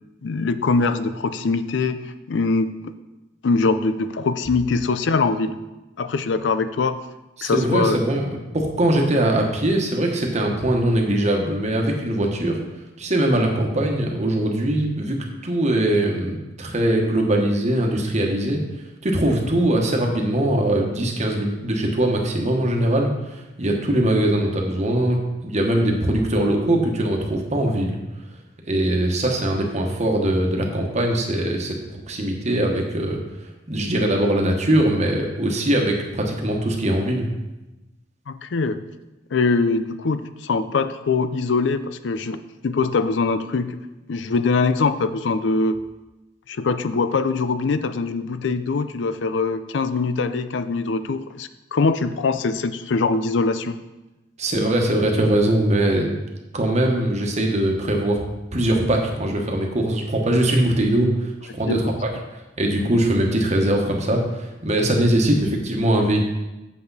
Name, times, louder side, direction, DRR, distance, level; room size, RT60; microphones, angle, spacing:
voice 1, 0.2-2.9 3.4-5.6 6.0-7.0 7.4-8.1 38.3-38.8 39.3-43.8 44.1-45.8 46.5-53.8 61.7-61.9, left 4 dB, 70° left, 12 dB, 0.5 m, -23 dB
voice 2, 7.4-8.3 8.5-12.6 13.0-15.2 15.4-18.6 19.0-28.0 28.6-31.8 32.1-33.2 33.7-37.3 54.4-56.2 56.5-58.2 58.5-62.1 62.6-66.2, right 1 dB, 40° right, 2 dB, 1.2 m, -21 dB
8.2 x 6.7 x 4.1 m, 1.0 s
head